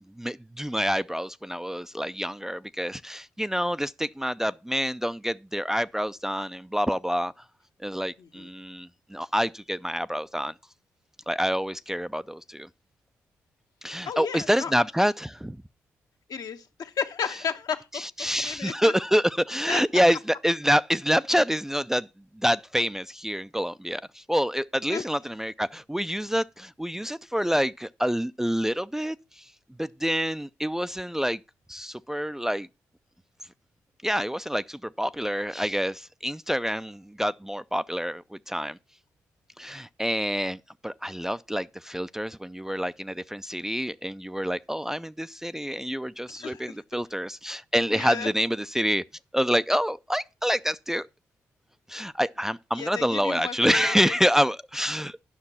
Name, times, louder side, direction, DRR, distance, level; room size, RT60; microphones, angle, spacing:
voice 1, 0.2-7.3 7.8-10.5 11.3-12.7 13.8-15.6 17.9-22.1 22.4-29.2 29.8-31.4 31.7-32.7 34.0-38.8 39.6-40.6 40.8-49.0 49.3-51.1 51.9-55.2, equal, 5° right, 0.4 m, -27 dB
voice 2, 8.2-8.5 14.1-14.7 16.3-19.0 19.7-19.8 24.9-25.0 46.3-46.8 47.9-48.3 52.8-54.2, left 7 dB, 65° left, 1.1 m, -34 dB
9.8 x 5.9 x 5.6 m
hypercardioid pair, 45°, 7 cm